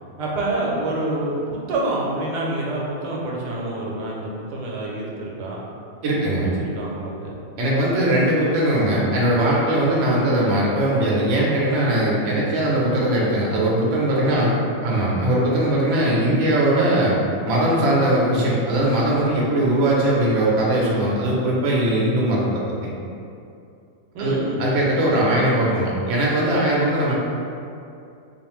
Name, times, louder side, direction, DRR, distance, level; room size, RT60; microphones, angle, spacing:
voice 1, 0.2-5.6 6.2-7.4 14.1-14.6 24.1-24.8, right 2 dB, 85° right, -3 dB, 1.2 m, -27 dB
voice 2, 6.0-6.5 7.6-14.5 14.8-17.2 17.4-22.6 24.2-27.1, right 1 dB, 65° right, -5 dB, 0.8 m, -20 dB
2.5 x 2.4 x 3.0 m, 2.5 s
omnidirectional pair, 1.7 m